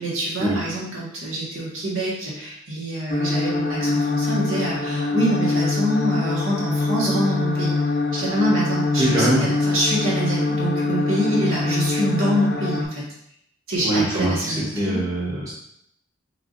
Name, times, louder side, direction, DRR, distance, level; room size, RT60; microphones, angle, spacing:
voice 1, 0.0-7.8 8.1-13.0 13.7-15.0, right 1 dB, 75° right, -6 dB, 1.5 m, -25 dB
sound 1, 3.1-12.8, left 3 dB, 50° left, 0.6 m, -24 dB
voice 2, 9.0-9.4 13.8-15.5, right 1 dB, 15° right, -7 dB, 1.0 m, -23 dB
4.7 x 3.4 x 2.5 m, 0.73 s
head